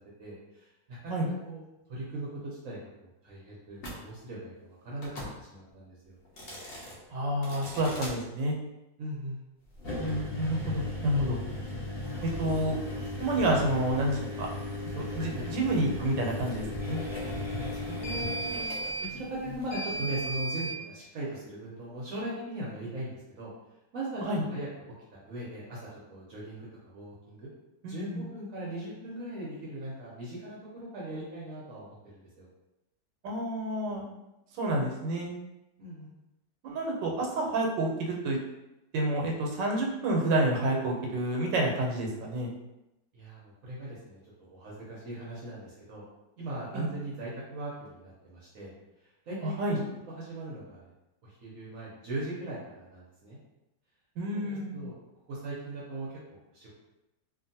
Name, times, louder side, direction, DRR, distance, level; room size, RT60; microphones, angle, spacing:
voice 1, 0.2-1.2 1.4-1.6 1.9-6.1 9.0-9.4 15.2-15.5 17.7-18.7 19.0-23.5 23.9-27.5 27.8-32.5 35.8-36.1 43.1-46.0 46.4-48.7 49.3-49.8 50.1-50.9 51.2-53.4 54.3-55.0 55.3-56.7, right 1 dB, 65° right, -6 dB, 0.9 m, -39 dB
sound 1, 3.8-4.0 5.0-5.3 6.2-6.9 7.4-8.1 9.7-20.8, left 1 dB, 80° left, 0.5 m, -36 dB
voice 2, 7.1-8.6 9.9-11.4 12.2-12.8 13.2-14.5 14.9-17.0 24.2-24.4 27.8-28.3 33.2-34.0 34.6-35.3 36.6-38.4 38.9-42.5 46.7-46.9 49.4-49.8 54.2-54.8, right 1 dB, 90° right, -1 dB, 1.3 m, -29 dB
2.7 x 2.5 x 2.6 m, 0.94 s
omnidirectional pair, 1.9 m